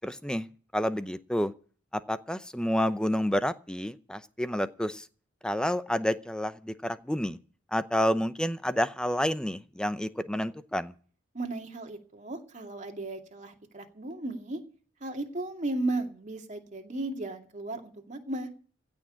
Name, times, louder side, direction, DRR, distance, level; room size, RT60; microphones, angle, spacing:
voice 1, 0.0-0.5 0.7-1.5 1.9-5.0 5.4-7.4 7.7-10.9, equal, 5° left, 0.7 m, -29 dB
voice 2, 11.3-14.6 15.0-18.5, right 2 dB, 35° right, 2.4 m, -35 dB
16.0 x 6.2 x 9.8 m
head